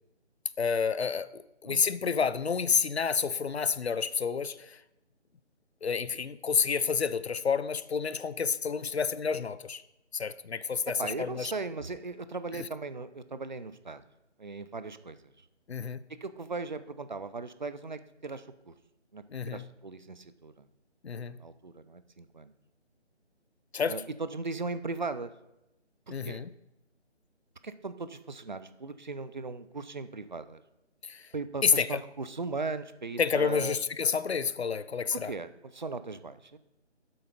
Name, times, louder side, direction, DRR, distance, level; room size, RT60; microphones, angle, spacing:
voice 1, 0.6-4.8 5.8-9.8 10.1-11.5 15.7-16.0 19.3-19.6 21.0-21.4 23.7-23.9 26.1-26.5 31.0-31.3 31.6-32.0 33.2-35.3, left 6 dB, 65° left, 0.6 m, -29 dB
voice 2, 10.9-14.0 14.4-15.5 16.2-18.7 19.1-20.7 21.3-22.5 23.9-25.3 26.1-26.4 27.6-30.6 31.3-33.8 35.1-36.6, right 3 dB, 40° right, 0.5 m, -38 dB
7.9 x 7.8 x 5.1 m
figure-of-eight pair, 155°, 35 cm